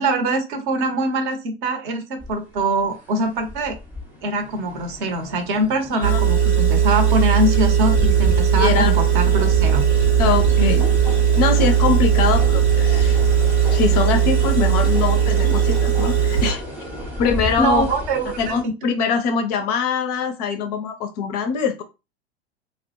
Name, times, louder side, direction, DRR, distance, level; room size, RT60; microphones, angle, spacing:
voice 1, 0.0-3.8 4.2-9.8 10.6-10.8 17.6-18.6, right 1 dB, 50° right, 6 dB, 0.7 m, -23 dB
sound 1, 2.2-18.6, left 2 dB, 5° right, 0.6 m, -32 dB
Engine, 6.0-16.5, right 8 dB, 80° right, 0.8 m, -18 dB
voice 2, 8.6-8.9 10.2-10.9 11.4-13.2 13.7-16.6 17.2-17.9 18.4-21.8, left 6 dB, 40° left, 7 dB, 0.4 m, -23 dB
2.1 x 2.0 x 2.9 m, 0.27 s
figure-of-eight pair, 90°, 33 cm